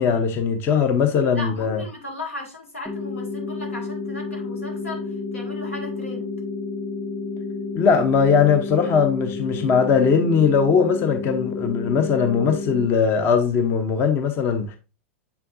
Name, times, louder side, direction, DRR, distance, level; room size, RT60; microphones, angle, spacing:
voice 1, 0.0-1.8 7.7-14.8, left 6 dB, 35° left, 0.8 m, -20 dB
voice 2, 1.3-6.3, left 2 dB, 85° left, 1.9 m, -36 dB
sound 1, 2.9-12.9, left 3 dB, 15° left, 1.8 m, -30 dB
7.0 x 5.6 x 2.6 m
figure-of-eight pair, 95°, 7 cm